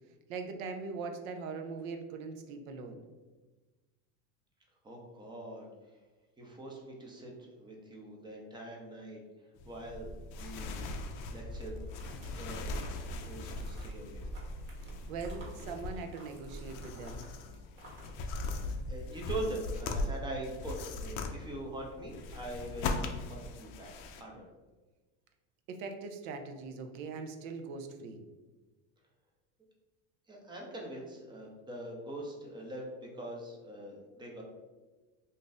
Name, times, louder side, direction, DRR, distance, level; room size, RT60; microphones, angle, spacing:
voice 1, 0.3-3.0 15.1-17.2 25.7-28.2, right 4 dB, 80° right, 5 dB, 0.6 m, -41 dB
voice 2, 4.8-5.7 6.4-9.2 9.7-11.8 12.4-12.8 13.3-14.2 15.0-15.1 18.3-18.4 18.9-23.9 24.2-24.4 30.3-34.4, right 1 dB, 10° right, -1 dB, 0.5 m, -43 dB
sound 1, 9.6-24.2, left 3 dB, 55° left, 0.5 m, -40 dB
sound 2, 9.7-19.6 20.0-20.9, equal, 30° right, 1.0 m, -44 dB
2.6 x 2.4 x 3.8 m, 1.2 s
supercardioid pair, 130°, 39 cm